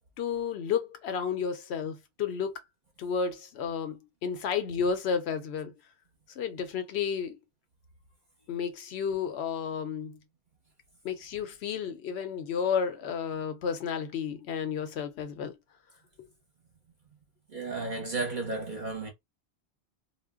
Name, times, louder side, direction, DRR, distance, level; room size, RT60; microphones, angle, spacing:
voice 1, 0.2-2.5 3.0-5.7 6.4-7.4 8.5-10.2 11.0-15.6, left 6 dB, 75° left, 0.9 m, -32 dB
voice 2, 17.5-19.1, right 3 dB, 50° right, 0.7 m, -33 dB
2.1 x 2.1 x 3.5 m
omnidirectional pair, 1.1 m